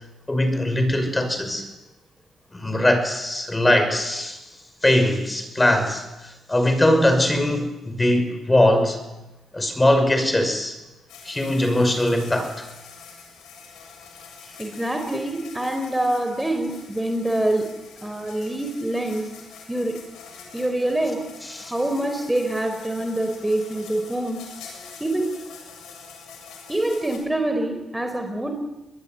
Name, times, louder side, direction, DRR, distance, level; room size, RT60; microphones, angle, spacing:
voice 1, 0.3-1.7 2.5-4.4 4.8-9.0 9.5-10.8 11.2-12.7 21.5-21.7, left 1 dB, 15° left, 8 dB, 5.8 m, -21 dB
sound 1, 11.1-27.2, left 6 dB, 85° left, 7.7 m, -45 dB
voice 2, 14.6-17.7 18.0-19.3 19.7-20.0 20.5-21.2 21.7-24.4 25.0-25.3 26.7-28.5, right 1 dB, 10° right, 4 dB, 4.4 m, -25 dB
24.5 x 21.5 x 9.5 m, 1.0 s
cardioid pair, 90°, 0 cm